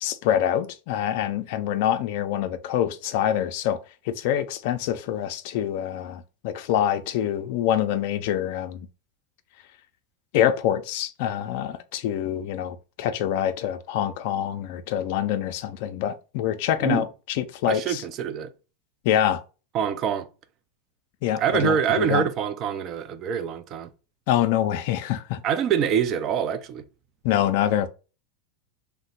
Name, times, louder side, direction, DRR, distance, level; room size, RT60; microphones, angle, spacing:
voice 1, 0.0-3.8 4.1-8.8 10.3-18.0 19.0-19.4 21.2-22.3 24.3-25.4 27.2-27.9, left 10 dB, 60° left, 0.4 m, -25 dB
voice 2, 17.7-18.5 19.7-20.3 21.4-23.9 25.4-26.8, right 8 dB, 40° right, 0.4 m, -25 dB
2.8 x 2.1 x 4.1 m
hypercardioid pair, 105°, 0 cm